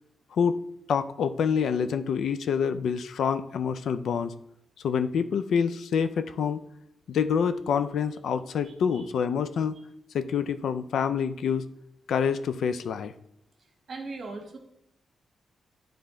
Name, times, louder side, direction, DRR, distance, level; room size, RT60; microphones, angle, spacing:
voice 1, 0.9-4.3 4.8-6.6 7.1-9.8 10.1-11.7 12.1-13.1, left 7 dB, 80° left, 11 dB, 0.4 m, -27 dB
voice 2, 8.6-9.0 13.9-14.6, right 3 dB, 50° right, 3 dB, 1.3 m, -39 dB
9.5 x 3.4 x 3.7 m, 0.77 s
cardioid pair, 110°, 0 cm